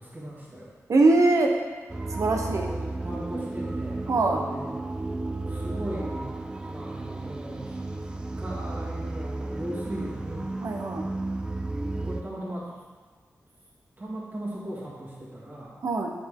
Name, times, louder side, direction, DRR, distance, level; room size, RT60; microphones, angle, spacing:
voice 1, 0.0-0.7 3.0-4.7 5.5-6.3 6.6-10.6 11.9-12.8 14.0-15.8, right 1 dB, 30° right, -7 dB, 1.9 m, -38 dB
voice 2, 0.9-1.5 2.1-2.7 4.1-4.4 10.6-11.0 15.8-16.1, right 2 dB, 70° right, 2 dB, 0.9 m, -22 dB
sound 1, 1.9-12.2, right 2 dB, 15° right, 0.4 m, -33 dB
9.0 x 5.1 x 3.7 m, 1.5 s
wide cardioid pair, 130°, 6 cm